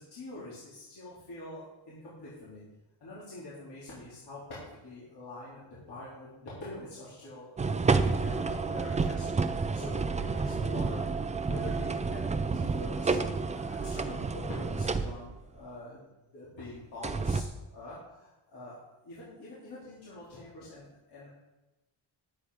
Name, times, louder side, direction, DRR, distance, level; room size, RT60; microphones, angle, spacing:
voice 1, 0.1-2.6 3.0-5.6 5.9-16.1 16.3-21.3, left 2 dB, 55° left, -9 dB, 3.5 m, -45 dB
sound 1, 7.6-15.4 17.0-17.4, right 4 dB, 15° right, 0.4 m, -30 dB
10.5 x 8.6 x 4.8 m, 1.1 s
wide cardioid pair, 165°, 46 cm